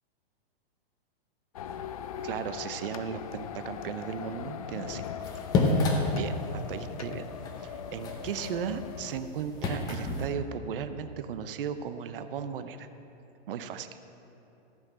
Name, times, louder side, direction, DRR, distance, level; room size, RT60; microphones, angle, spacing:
sound 1, 1.5-9.2, left 8 dB, 35° left, 0.4 m, -39 dB
voice 1, 2.2-5.1 5.6-7.3 7.6-12.9 13.5-13.9, right 7 dB, 60° right, 10 dB, 0.8 m, -36 dB
sound 2, 5.2-10.3, left 2 dB, 10° left, 0.7 m, -31 dB
14.5 x 6.1 x 8.8 m, 2.9 s
hypercardioid pair, 170°, 32 cm